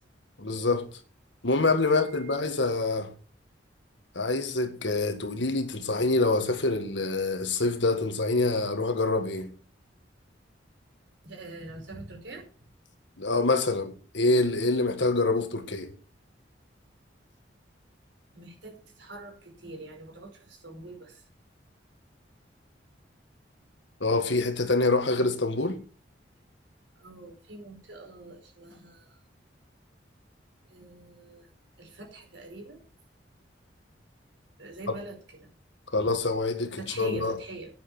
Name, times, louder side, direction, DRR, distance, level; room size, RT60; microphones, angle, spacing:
voice 1, 0.4-0.9 1.4-3.1 4.2-9.5 13.2-15.9 24.0-25.8 34.9-35.0 35.9-37.4, left 3 dB, 75° left, 1.8 m, -26 dB
voice 2, 1.8-2.4 11.2-12.4 18.3-21.2 26.9-29.2 30.7-31.5 31.8-32.8 34.6-35.2 36.0-36.1 36.8-37.7, right 2 dB, 75° right, 5.0 m, -44 dB
10.0 x 9.4 x 6.1 m
head